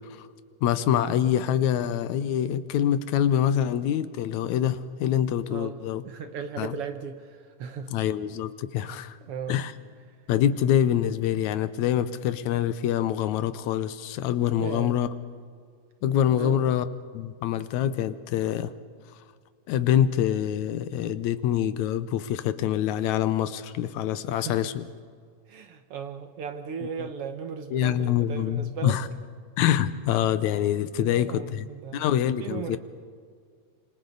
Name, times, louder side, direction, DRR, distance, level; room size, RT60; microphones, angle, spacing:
voice 1, 0.6-6.0 6.6-6.8 7.9-9.1 9.5-9.7 10.3-15.1 16.0-16.9 17.1-18.7 19.7-24.9 27.0-27.1 27.7-29.1 29.6-32.8, left 10 dB, 75° left, 13 dB, 2.1 m, -25 dB
voice 2, 6.0-7.9 8.7-9.6 14.6-15.0 16.4-16.6 24.3-24.7 25.5-29.0 31.0-32.0 32.4-32.8, right 6 dB, 65° right, 8 dB, 1.6 m, -37 dB
27.0 x 25.5 x 3.9 m, 2.1 s
omnidirectional pair, 3.4 m